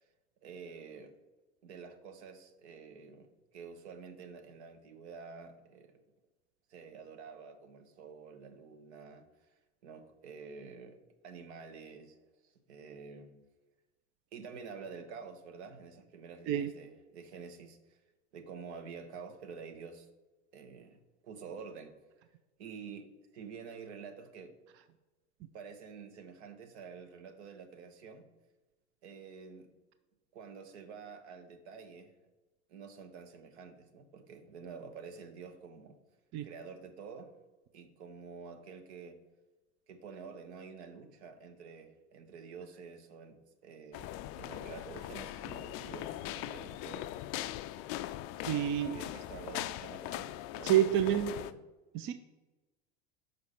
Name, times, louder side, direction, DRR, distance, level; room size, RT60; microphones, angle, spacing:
voice 1, 0.4-1.1 1.6-6.0 6.7-9.5 9.8-11.0 11.2-13.4 14.3-18.0 18.3-20.1 20.5-21.9 22.6-24.5 25.5-28.2 29.0-29.7 30.3-32.1 32.7-36.0 36.4-37.3 37.7-39.2 39.9-44.1 44.4-47.1 48.5-51.5, right 5 dB, 65° right, 7 dB, 1.2 m, -49 dB
sound 1, 43.9-51.5, left 14 dB, 40° left, 0.4 m, -40 dB
voice 2, 48.4-48.9 50.6-51.3 51.9-52.1, right 11 dB, 35° right, 11 dB, 0.5 m, -28 dB
5.8 x 5.3 x 5.8 m, 1.2 s
hypercardioid pair, 90°, 36 cm